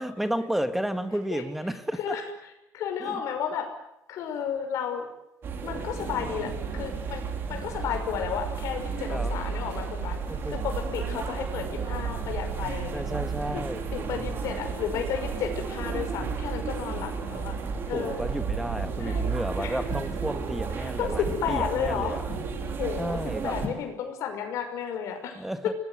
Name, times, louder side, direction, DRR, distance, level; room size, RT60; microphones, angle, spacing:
voice 1, 0.0-2.2 3.0-3.2 9.1-9.3 10.3-10.7 12.9-13.8 17.4-17.5 17.9-22.2 23.0-23.6 25.3-25.7, right 1 dB, 5° right, 9 dB, 1.5 m, -32 dB
voice 2, 2.7-3.7 4.1-5.1 5.6-7.2 7.5-10.2 10.5-13.0 13.5-17.6 17.9-18.2 19.0-19.2 19.6-19.8 20.8-22.2 22.8-25.4, left 8 dB, 60° left, 5 dB, 6.0 m, -32 dB
sound 1, 5.4-23.7, right 5 dB, 40° right, 3.9 m, -32 dB
sound 2, 16.0-16.1 16.9-17.0 17.6-17.8 18.8-19.1 19.8-20.2 21.2-21.5 22.2-22.6 23.6-23.9, left 4 dB, 20° left, 5.6 m, -39 dB
26.0 x 20.0 x 9.6 m, 0.86 s
cardioid pair, 175°, 6 cm